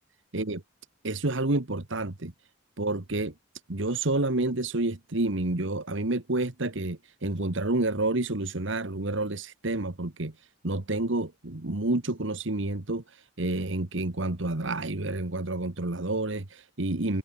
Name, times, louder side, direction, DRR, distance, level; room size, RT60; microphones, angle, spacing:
voice 1, 1.0-2.3 2.8-3.3 3.7-10.3 10.6-17.2, right 2 dB, 65° right, 1.7 m, -29 dB
head